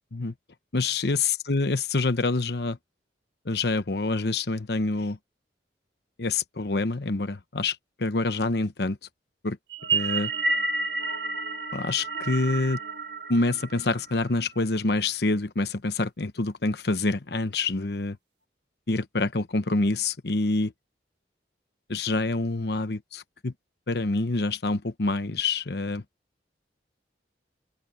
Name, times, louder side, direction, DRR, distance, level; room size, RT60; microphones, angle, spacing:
voice 1, 0.7-2.8 3.5-5.2 6.2-9.0 9.4-9.6 9.9-10.3 11.7-12.8 13.3-18.2 18.9-20.7 21.9-23.5 23.9-26.0, left 3 dB, 65° left, 0.9 m, -26 dB
sound 1, 9.7-14.2, right 3 dB, 80° right, 1.6 m, -30 dB
open air
head